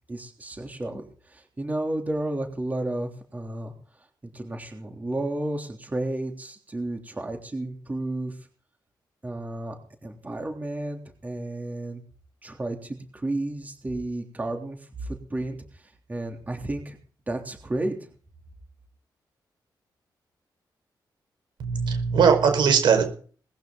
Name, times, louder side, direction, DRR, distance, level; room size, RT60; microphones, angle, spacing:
voice 1, 0.1-3.7 4.3-8.4 9.2-9.8 10.0-12.0 12.4-17.0 17.3-18.0, right 1 dB, 20° right, 3 dB, 3.3 m, -32 dB
voice 2, 21.6-23.0, right 6 dB, 85° right, 6 dB, 5.2 m, -20 dB
20.0 x 15.0 x 4.0 m, 0.42 s
wide cardioid pair, 145°, 8 cm